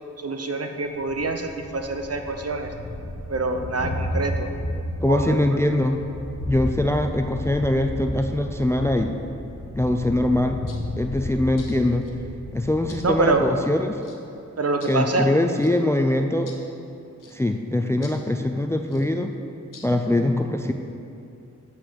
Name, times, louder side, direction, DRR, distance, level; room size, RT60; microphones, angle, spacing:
voice 1, 0.2-2.7 3.3-4.5 5.1-5.4 13.0-13.5 14.6-15.3, right 3 dB, 50° right, 5 dB, 0.8 m, -25 dB
Thunder, 0.9-13.6, equal, 60° left, 1.5 m, -33 dB
voice 2, 5.0-6.0 6.5-9.2 9.8-10.6 11.0-12.1 12.5-14.0 14.9-16.5 17.3-19.3 19.8-20.7, left 1 dB, 10° left, 6 dB, 0.4 m, -22 dB
sound 1, 10.7-10.8 11.6-12.1 12.9-13.1 14.0-14.2 14.8-15.0 15.6-15.7 16.5-16.6 17.2-17.4 18.0-18.2 18.9-19.1 19.7-19.9, left 4 dB, 85° left, 0.9 m, -46 dB
8.0 x 4.2 x 6.4 m, 2.7 s
cardioid pair, 50°, 31 cm